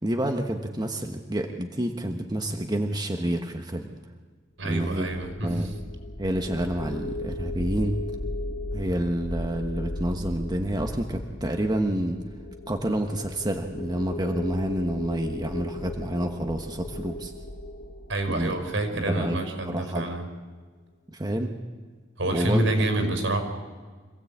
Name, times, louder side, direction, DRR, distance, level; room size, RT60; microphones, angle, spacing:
voice 1, 0.0-3.9 4.6-5.1 5.4-5.7 6.2-8.0 8.7-12.2 12.7-17.3 18.3-18.5 18.9-19.4 19.6-20.1 21.1-21.5 22.3-22.9, right 1 dB, 20° right, 3 dB, 1.2 m, -28 dB
sound 1, 4.6-19.7, left 2 dB, 65° left, 1.6 m, -37 dB
voice 2, 4.6-5.7 18.1-20.3 22.2-23.4, right 1 dB, 75° right, 5 dB, 5.1 m, -27 dB
26.0 x 16.5 x 8.6 m, 1.4 s
head